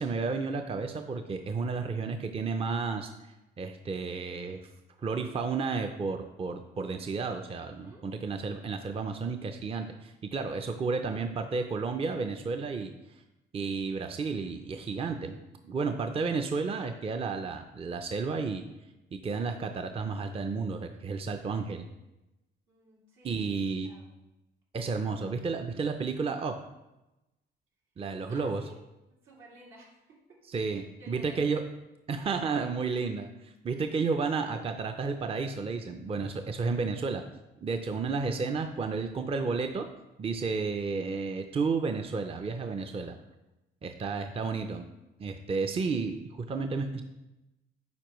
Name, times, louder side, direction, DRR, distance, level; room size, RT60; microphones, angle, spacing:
voice 1, 0.0-3.1 3.6-4.7 5.0-13.2 13.5-15.4 15.6-18.7 19.1-21.9 23.2-23.9 24.7-26.7 28.0-28.6 30.5-31.6 32.1-37.2 37.6-39.9 40.2-43.2 43.8-44.9 45.2-47.0, right 4 dB, 30° right, 6 dB, 0.5 m, -32 dB
voice 2, 7.7-8.1 22.7-23.5 23.8-24.1 28.3-28.8 29.1-30.4 30.7-31.4, right 1 dB, 85° right, -5 dB, 2.4 m, -54 dB
9.4 x 4.4 x 3.0 m, 0.97 s
cardioid pair, 90°, 20 cm